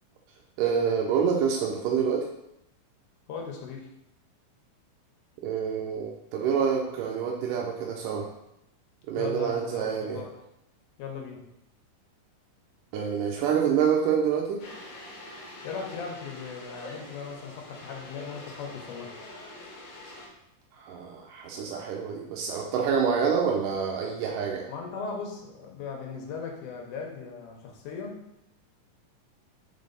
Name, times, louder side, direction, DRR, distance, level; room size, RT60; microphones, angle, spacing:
voice 1, 0.6-2.3 5.4-8.3 9.1-10.2 12.9-14.6 20.8-24.7, right 7 dB, 85° right, 0 dB, 2.2 m, -27 dB
voice 2, 3.3-3.9 9.1-10.3 11.0-11.4 15.6-19.1 24.7-28.2, left 5 dB, 70° left, 1 dB, 2.3 m, -38 dB
sound 1, 14.6-20.3, left 2 dB, 55° left, 1.9 m, -45 dB
5.4 x 4.7 x 3.9 m, 0.83 s
omnidirectional pair, 3.9 m